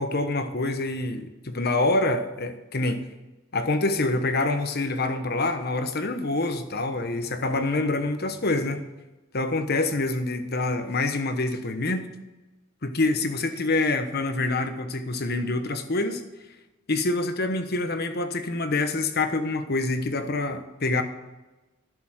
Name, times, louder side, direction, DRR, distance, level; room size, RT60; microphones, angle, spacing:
voice 1, 0.0-3.0 3.5-8.8 9.3-12.1 12.8-16.2 16.9-21.0, left 2 dB, 50° left, 8 dB, 1.1 m, -26 dB
12.0 x 6.8 x 6.4 m, 1.1 s
head